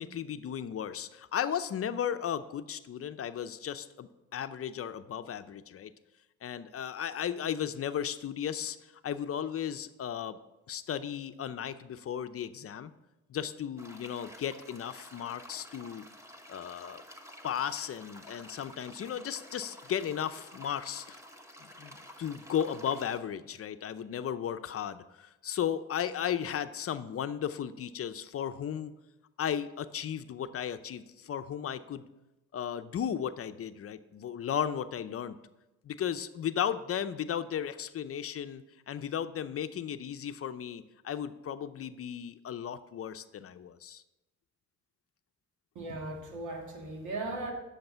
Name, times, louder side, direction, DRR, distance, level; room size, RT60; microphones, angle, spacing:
voice 1, 0.0-5.9 6.4-8.8 9.0-10.4 10.7-12.9 13.3-16.1 16.5-17.0 17.4-21.2 21.8-28.9 29.4-32.1 32.5-35.4 35.8-44.0, left 9 dB, 50° left, 10 dB, 0.6 m, -35 dB
sound 1, 13.8-23.2, equal, 10° right, 1.3 m, -51 dB
voice 2, 45.8-47.5, right 2 dB, 75° right, 1 dB, 2.3 m, -37 dB
10.5 x 6.6 x 5.6 m, 0.97 s
cardioid pair, 90°, 30 cm